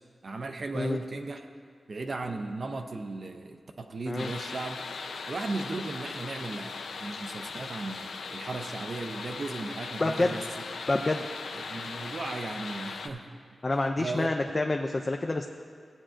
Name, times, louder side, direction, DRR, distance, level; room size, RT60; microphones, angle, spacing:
voice 1, 0.2-1.4 1.9-4.8 5.3-10.4 11.5-13.3 14.0-14.3, right 3 dB, 45° right, 5 dB, 0.5 m, -36 dB
sound 1, 4.2-13.1, left 4 dB, 85° left, 0.5 m, -39 dB
voice 2, 10.0-10.4 10.9-11.2 13.6-15.5, left 2 dB, 25° left, 3 dB, 0.4 m, -27 dB
15.5 x 8.7 x 2.5 m, 2.1 s
wide cardioid pair, 140°, 0 cm